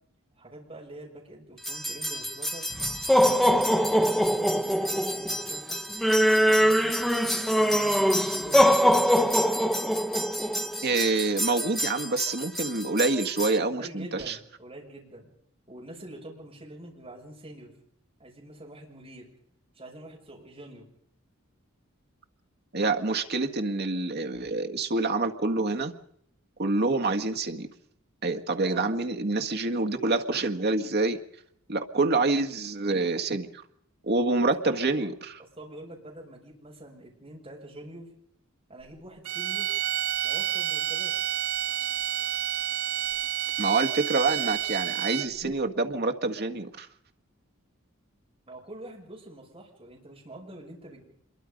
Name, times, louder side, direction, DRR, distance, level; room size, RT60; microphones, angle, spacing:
voice 1, 0.4-2.7 3.2-5.8 6.3-8.8 13.7-15.3 15.7-17.7 18.2-19.3 19.7-20.9 28.6-28.9 34.4-35.1 35.4-38.1 38.7-39.7 40.2-41.1 48.5-51.0, right 1 dB, 25° right, -1 dB, 6.5 m, -45 dB
sound 1, 1.6-13.6, equal, ahead, 0.8 m, -24 dB
voice 2, 10.8-14.4 22.7-25.9 26.6-27.7 28.2-31.2 31.7-33.6 34.0-35.3 43.6-46.9, right 3 dB, 50° right, 5 dB, 1.7 m, -27 dB
sound 2, 39.2-45.5, right 12 dB, 90° right, 0.9 m, -29 dB
26.0 x 23.0 x 5.3 m, 0.69 s
head